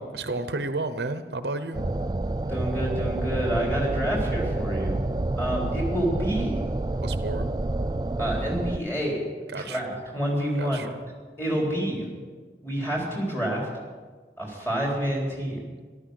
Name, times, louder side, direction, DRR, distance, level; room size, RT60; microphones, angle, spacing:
voice 1, 0.1-1.8 7.0-7.4 9.5-9.8 10.6-11.0, right 2 dB, 70° right, 10 dB, 0.8 m, -32 dB
sound 1, 1.7-8.8, right 2 dB, 20° right, 0.3 m, -28 dB
voice 2, 2.4-5.0 5.4-6.6 8.2-10.8 11.4-12.1 12.6-13.7 14.4-15.6, equal, 15° left, -2 dB, 3.9 m, -28 dB
14.0 x 12.0 x 6.5 m, 1.5 s
head